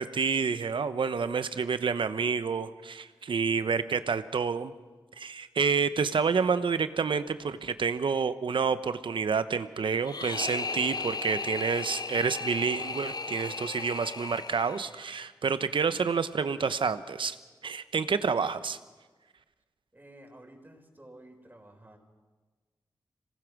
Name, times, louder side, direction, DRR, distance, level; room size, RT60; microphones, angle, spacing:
voice 1, 0.0-4.7 5.2-17.4 17.6-18.8, right 5 dB, 80° right, 12 dB, 0.9 m, -29 dB
sound 1, 10.0-15.2, left 4 dB, 50° left, 0.7 m, -36 dB
voice 2, 19.9-22.0, right 1 dB, 25° right, 1 dB, 4.9 m, -52 dB
26.0 x 18.5 x 6.1 m, 1.3 s
cardioid pair, 40°, 8 cm